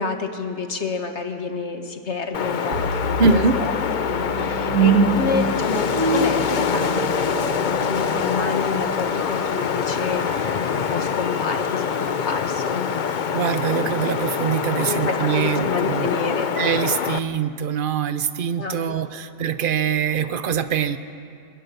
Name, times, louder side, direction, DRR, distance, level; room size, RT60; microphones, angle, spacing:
voice 1, 0.0-3.7 4.0-12.9 14.9-16.5 18.6-18.9, left 4 dB, 45° left, 5 dB, 1.7 m, -29 dB
Wind, 2.3-17.2, left 6 dB, 80° left, 0.4 m, -25 dB
sound 1, 2.7-11.8, right 3 dB, 80° right, 2.6 m, -26 dB
voice 2, 3.2-3.6 13.3-21.0, right 6 dB, 45° right, 11 dB, 0.7 m, -23 dB
22.0 x 21.0 x 6.8 m, 2.4 s
omnidirectional pair, 1.8 m